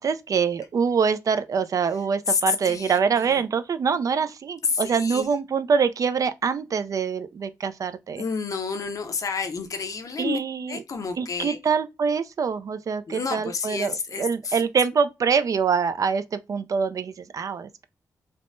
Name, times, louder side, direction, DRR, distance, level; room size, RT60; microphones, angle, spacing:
voice 1, 0.0-8.2 10.2-10.8 11.2-17.8, right 6 dB, 55° right, 0.3 m, -25 dB
voice 2, 2.3-3.4 4.6-5.3 8.2-10.4 10.7-11.6 13.1-14.6, left 5 dB, 55° left, 0.6 m, -29 dB
3.3 x 2.1 x 2.5 m
cardioid pair, 80°, 7 cm